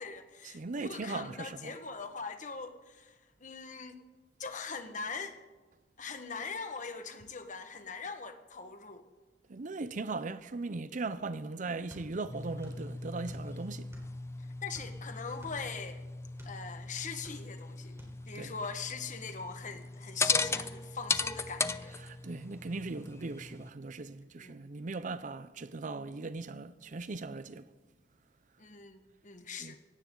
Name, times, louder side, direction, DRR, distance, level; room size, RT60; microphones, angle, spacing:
voice 1, 0.0-4.0 4.4-5.4 6.0-9.1 14.6-16.0 16.4-22.0 24.4-24.6 28.6-29.8, left 5 dB, 45° left, 1.5 m, -42 dB
voice 2, 0.5-1.8 9.5-13.9 18.3-18.5 22.0-27.7 29.6-29.8, right 3 dB, 45° right, 0.6 m, -39 dB
sound 1, 11.9-12.8 13.1-14.2 14.7-16.6 17.0-17.7 18.0-18.2, right 1 dB, 15° right, 4.0 m, -52 dB
sound 2, 12.3-23.7, left 4 dB, 15° left, 0.5 m, -37 dB
17.5 x 16.5 x 3.9 m
head